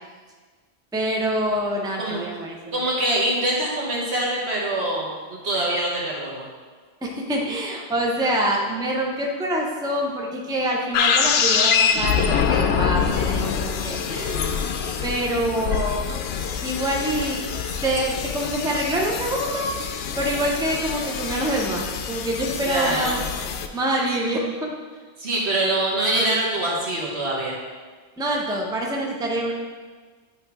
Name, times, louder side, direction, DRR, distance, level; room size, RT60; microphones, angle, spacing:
voice 1, 0.9-2.8 7.0-14.6 15.0-16.0 16.6-17.4 17.8-19.7 20.2-23.2 23.7-24.7 28.2-29.5, right 1 dB, 5° right, -1 dB, 0.6 m, -26 dB
voice 2, 2.7-5.1 5.4-6.4 22.6-23.2 25.2-27.6, right 1 dB, 75° right, -4 dB, 1.7 m, -24 dB
sound 1, 10.9-23.7, left 6 dB, 70° left, 0.8 m, -25 dB
8.9 x 3.3 x 4.8 m, 1.5 s
omnidirectional pair, 1.1 m